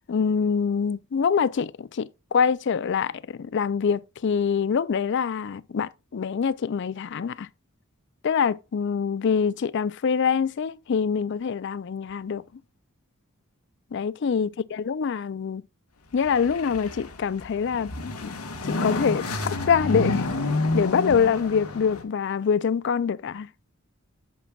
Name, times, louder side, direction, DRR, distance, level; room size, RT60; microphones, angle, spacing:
voice 1, 0.1-7.5 8.2-12.4 13.9-15.6 16.1-18.3 18.7-19.3 19.7-20.3 20.7-23.5, left 6 dB, 55° left, 0.4 m, -25 dB
sound 1, 16.1-22.0, left 2 dB, 90° left, 1.4 m, -29 dB
9.2 x 7.1 x 2.3 m
head